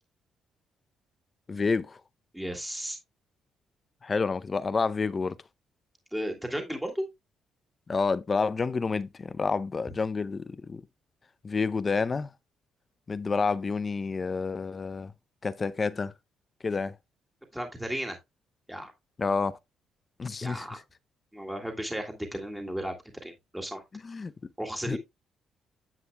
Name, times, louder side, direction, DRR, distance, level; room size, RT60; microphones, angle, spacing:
voice 1, 1.5-2.0 4.0-5.4 7.9-10.8 11.4-12.3 13.1-15.1 15.4-16.1 16.6-16.9 19.2-19.5 20.2-20.8 24.0-24.3 24.9-25.0, left 4 dB, 35° left, 0.5 m, -29 dB
voice 2, 2.3-3.0 6.1-7.1 17.5-18.2 18.7-18.9 20.4-20.8 21.3-22.9 23.2-23.8 24.6-25.0, equal, 5° right, 1.8 m, -34 dB
9.8 x 7.6 x 2.2 m
cardioid pair, 90°, 0 cm